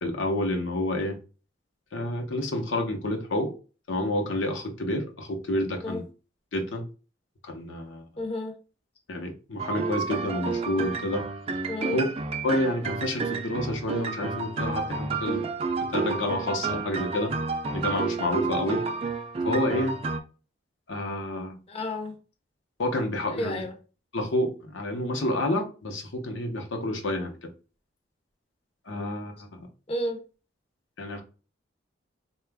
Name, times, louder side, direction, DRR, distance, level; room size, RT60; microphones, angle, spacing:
voice 1, 0.0-1.2 1.9-3.5 3.9-6.0 6.5-6.9 7.4-8.0 9.1-11.3 11.9-12.1 12.4-15.5 15.9-17.3 17.7-18.8 19.4-20.0 20.9-21.6 22.8-23.6 24.1-27.5 28.9-29.7 31.0-31.2, left 1 dB, 80° left, 0.8 m, -29 dB
voice 2, 8.2-8.5 11.7-12.0 21.7-22.1 23.3-23.7 29.9-30.2, left 1 dB, 30° left, 0.6 m, -31 dB
sound 1, 9.6-20.2, right 4 dB, 30° right, 0.4 m, -30 dB
3.8 x 2.3 x 3.4 m
head